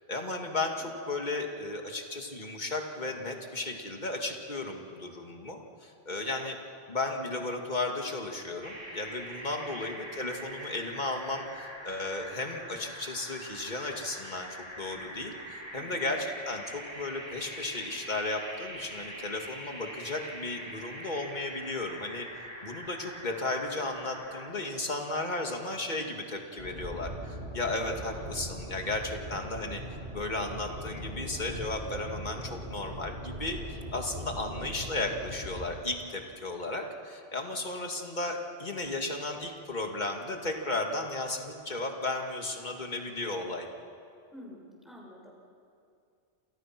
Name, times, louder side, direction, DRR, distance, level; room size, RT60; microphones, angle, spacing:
voice 1, 0.1-6.6 6.9-14.5 14.8-22.3 22.6-29.8 30.1-43.7, left 2 dB, 45° left, 2 dB, 2.4 m, -34 dB
voice 2, 0.8-1.1 15.7-16.1 34.3-34.6 44.3-45.3, left 1 dB, ahead, -2 dB, 6.4 m, -51 dB
sound 1, 8.6-24.5, equal, 25° right, 3.4 m, -44 dB
sound 2, 26.6-35.6, right 1 dB, 60° right, 8.1 m, -40 dB
29.0 x 28.5 x 6.1 m, 2.5 s
omnidirectional pair, 1.1 m